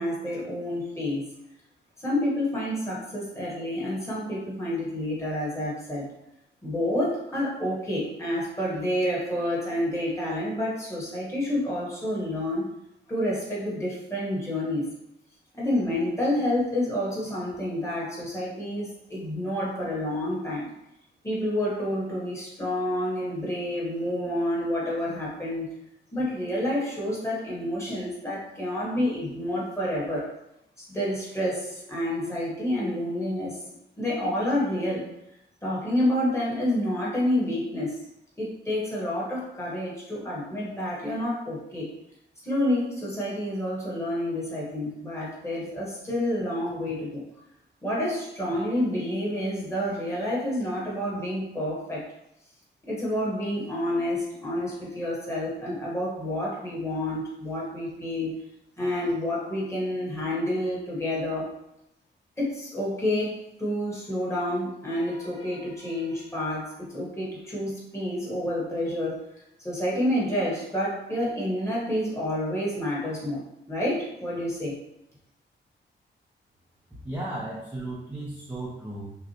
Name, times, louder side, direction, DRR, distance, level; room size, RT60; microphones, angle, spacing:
voice 1, 0.0-1.3 2.0-6.1 6.6-12.7 13.1-14.9 15.5-20.7 21.2-25.7 26.1-30.3 30.8-33.6 34.0-35.0 35.6-38.0 38.4-41.9 42.4-47.2 47.8-52.1 52.8-58.3 58.8-61.5 62.4-69.2 69.6-74.8, left 1 dB, 15° left, -6 dB, 1.2 m, -29 dB
voice 2, 77.0-79.2, right 1 dB, 10° right, -7 dB, 0.6 m, -35 dB
6.0 x 2.1 x 2.8 m, 0.83 s
wide cardioid pair, 150°, 20 cm